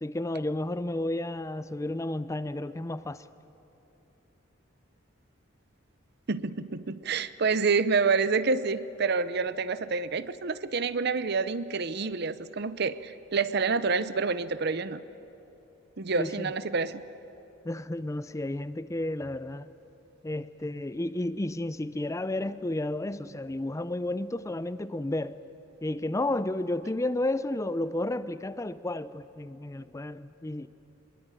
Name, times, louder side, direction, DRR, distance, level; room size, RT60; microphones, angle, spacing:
voice 1, 0.0-3.2 16.2-16.5 17.6-19.7 20.2-25.4 25.8-30.7, left 1 dB, 15° left, 14 dB, 0.4 m, -32 dB
voice 2, 6.3-15.0 16.0-17.0, right 4 dB, 55° right, 14 dB, 0.7 m, -28 dB
22.5 x 22.0 x 9.0 m, 3.0 s
head